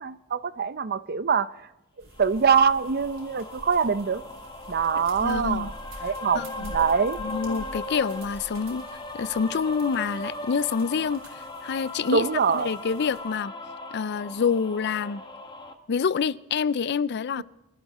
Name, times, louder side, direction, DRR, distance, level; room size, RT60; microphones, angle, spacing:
voice 1, 0.0-1.5 2.2-4.2 4.7-5.7 6.0-7.2 12.1-12.7 17.4-17.5, right 6 dB, 50° right, 0.6 m, -24 dB
sound 1, 2.0-13.2, right 1 dB, 65° right, 4.8 m, -46 dB
sound 2, 2.2-15.7, left 2 dB, 20° left, 1.3 m, -38 dB
voice 2, 5.2-5.7 6.3-6.7 7.2-8.8 9.1-12.2 12.5-13.5 13.9-15.2 15.9-17.4, left 6 dB, 55° left, 0.4 m, -27 dB
24.0 x 12.5 x 4.1 m
head